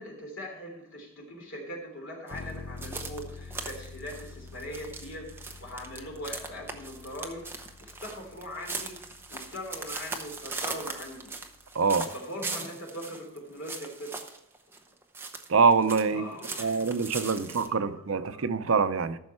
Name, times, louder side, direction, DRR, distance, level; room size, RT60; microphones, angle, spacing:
voice 1, 0.0-9.0 9.3-11.3 12.0-14.2 16.1-18.5, equal, 70° left, 3.3 m, -41 dB
sound 1, 2.3-12.1, left 3 dB, 85° left, 0.9 m, -47 dB
sound 2, 2.3-16.1 16.4-17.7, right 3 dB, 10° right, 0.7 m, -39 dB
voice 2, 11.8-12.1 15.5-16.2 16.6-19.2, right 5 dB, 75° right, 0.6 m, -24 dB
14.0 x 6.4 x 4.4 m
head